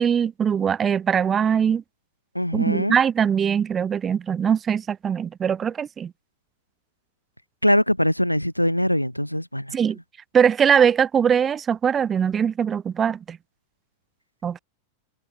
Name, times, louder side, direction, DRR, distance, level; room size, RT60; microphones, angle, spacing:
voice 1, 0.0-1.8 2.5-6.1 9.7-10.0 10.3-13.4 14.4-14.6, right 7 dB, 20° right, 5.7 m, -21 dB
voice 2, 2.3-3.0 7.6-9.8, equal, 90° left, 3.5 m, -22 dB
figure-of-eight pair, 90°, 0 cm